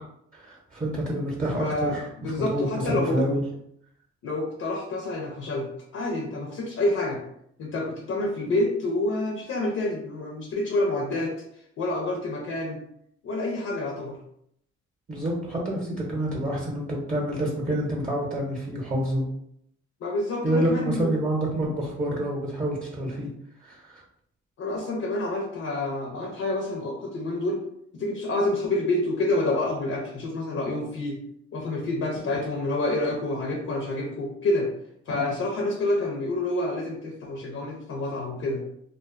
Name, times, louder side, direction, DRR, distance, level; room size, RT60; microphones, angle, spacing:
voice 1, 0.3-3.4 15.1-19.2 20.4-23.3 23.6-24.0, right 1 dB, 25° right, -3 dB, 0.8 m, -28 dB
voice 2, 1.5-3.3 4.2-7.2 7.6-11.3 11.8-12.8 13.2-14.2 20.0-21.2 24.6-27.6 27.9-31.2 31.5-34.7 35.1-38.6, left 2 dB, 50° left, -1 dB, 0.6 m, -28 dB
2.4 x 2.2 x 2.4 m, 0.72 s
cardioid pair, 90°, 30 cm